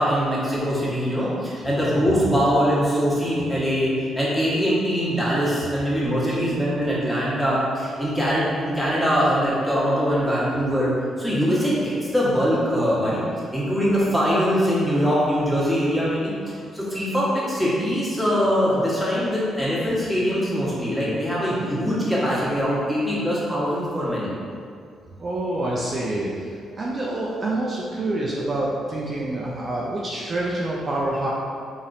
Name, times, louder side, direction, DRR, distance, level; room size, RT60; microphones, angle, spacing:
voice 1, 0.0-10.9 11.2-13.2 13.5-24.3, equal, 5° left, -8 dB, 1.2 m, -22 dB
voice 2, 25.2-31.3, right 1 dB, 40° right, -5 dB, 0.5 m, -27 dB
4.1 x 3.0 x 2.6 m, 2.2 s
cardioid pair, 90°, 0 cm